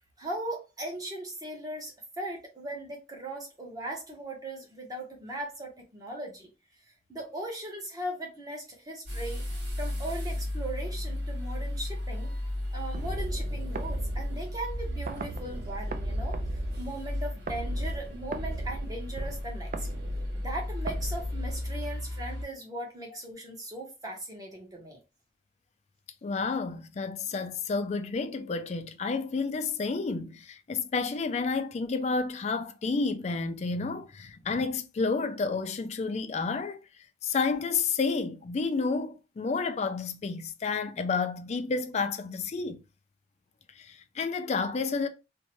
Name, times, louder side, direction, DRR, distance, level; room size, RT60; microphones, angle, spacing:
voice 1, 0.2-6.5 7.1-9.4 9.8-12.3 12.7-16.4 16.8-19.9 20.4-25.0, right 1 dB, 20° right, 0.9 m, -38 dB
sound 1, 9.1-22.5, left 1 dB, 80° right, 1.3 m, -34 dB
sound 2, 12.9-22.0, right 3 dB, 45° right, 0.3 m, -38 dB
voice 2, 26.2-36.8 37.2-42.8 43.9-45.1, left 4 dB, 40° left, 0.3 m, -30 dB
2.6 x 2.1 x 3.0 m
head